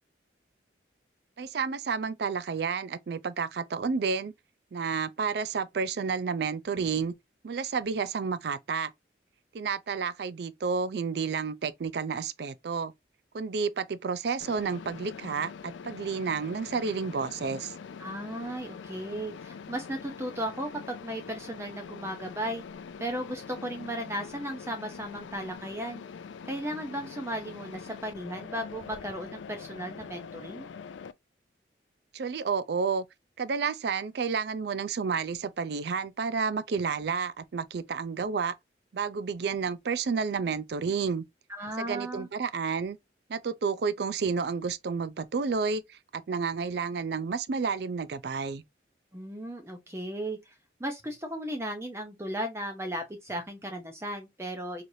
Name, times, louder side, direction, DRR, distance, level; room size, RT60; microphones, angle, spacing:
voice 1, 1.4-4.3 4.7-7.1 7.4-8.9 9.5-12.9 13.3-17.7 32.1-33.1 33.4-38.5 38.9-41.3 41.8-43.0 43.3-48.6, right 5 dB, 60° right, 0.4 m, -30 dB
Mechanisms, 14.4-31.1, left 6 dB, 90° left, 0.4 m, -44 dB
voice 2, 18.0-22.6 23.0-26.0 26.5-30.7 41.5-42.3 49.1-50.5 50.8-54.8, right 1 dB, 15° right, 0.6 m, -36 dB
4.0 x 3.2 x 2.6 m
head